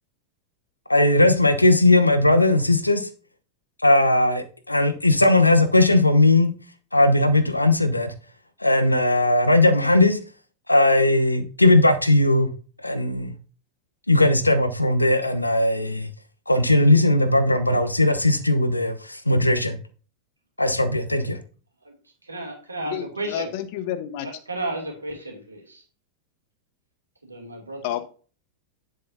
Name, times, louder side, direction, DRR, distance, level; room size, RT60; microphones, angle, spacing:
voice 1, 0.9-3.1 3.8-6.5 6.9-8.1 8.6-10.2 10.7-12.5 12.8-13.3 14.1-16.1 16.5-19.8 20.6-21.4, left 2 dB, 85° left, 0.9 m, -18 dB
voice 2, 22.2-23.5 24.5-25.8 27.2-28.0, right 2 dB, 80° right, 2.7 m, -33 dB
voice 3, 22.8-24.3 27.8-28.0, left 11 dB, 50° left, 1.1 m, -30 dB
9.7 x 7.6 x 2.7 m
figure-of-eight pair, 90°, 0 cm